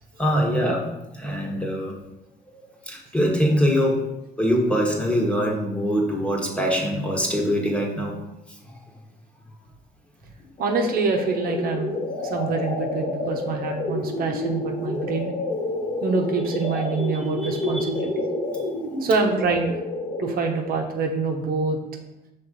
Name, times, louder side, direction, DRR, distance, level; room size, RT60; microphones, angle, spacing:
voice 1, 0.2-0.8 1.1-2.0 2.9-4.0 4.4-8.2 17.7-17.8, equal, 5° left, 0 dB, 1.4 m, -23 dB
sound 1, 10.6-20.6, left 2 dB, 40° left, 1.6 m, -29 dB
voice 2, 10.6-11.9 12.2-15.3 16.0-18.3 18.5-18.7 19.0-19.8 20.2-21.8, right 4 dB, 60° right, 3 dB, 1.0 m, -25 dB
5.7 x 3.8 x 5.4 m, 0.90 s
cardioid pair, 110°, 17 cm